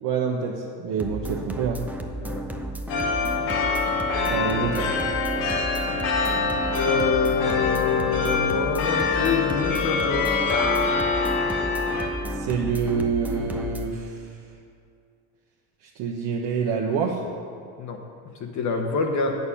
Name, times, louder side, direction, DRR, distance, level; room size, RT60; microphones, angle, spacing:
voice 1, 0.0-1.9 4.3-4.9 12.3-14.3 16.0-17.2, right 6 dB, 60° right, -2 dB, 1.0 m, -26 dB
sound 1, 1.0-13.9, right 1 dB, 5° right, 0.5 m, -33 dB
sound 2, 2.9-12.1, left 4 dB, 85° left, 1.2 m, -25 dB
voice 2, 6.7-10.3 17.8-18.0 18.4-19.4, left 5 dB, 40° left, 2 dB, 1.0 m, -26 dB
8.2 x 6.8 x 5.7 m, 2.3 s
supercardioid pair, 110°, 43 cm